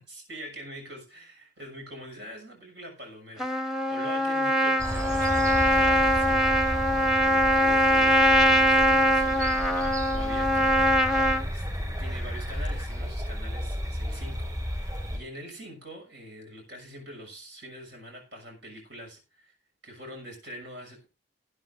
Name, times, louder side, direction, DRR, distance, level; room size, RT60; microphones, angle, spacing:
voice 1, 0.0-10.7 11.3-19.5 19.8-21.1, equal, 80° right, 2 dB, 6.8 m, -44 dB
Trumpet, 3.4-11.4, equal, ahead, 0.9 m, -22 dB
sound 1, 4.8-15.2, equal, 20° right, 6.4 m, -33 dB
20.5 x 9.8 x 2.7 m, 0.29 s
head